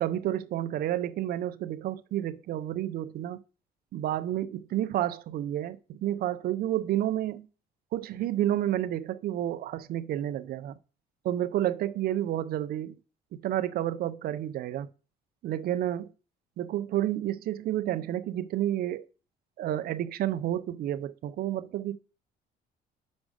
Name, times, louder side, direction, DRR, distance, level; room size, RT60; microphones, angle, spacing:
voice 1, 0.0-3.4 3.9-7.5 7.9-10.7 11.2-13.0 13.3-14.9 15.4-16.1 16.6-19.0 19.6-21.9, right 12 dB, 65° right, 0.6 m, -30 dB
6.2 x 5.2 x 4.9 m
cardioid pair, 110°, 17 cm